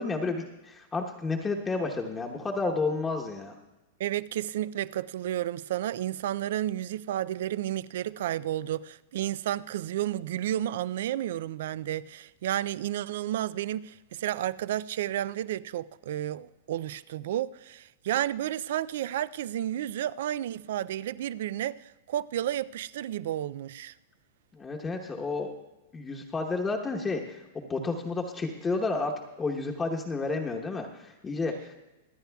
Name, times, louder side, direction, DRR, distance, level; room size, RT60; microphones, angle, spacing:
voice 1, 0.0-3.5 24.5-25.5 25.9-29.1 29.4-31.8, left 3 dB, 15° left, 1.0 m, -31 dB
voice 2, 4.0-23.9, right 12 dB, 70° right, 0.3 m, -32 dB
25.0 x 9.2 x 2.3 m
hypercardioid pair, 135°, 0 cm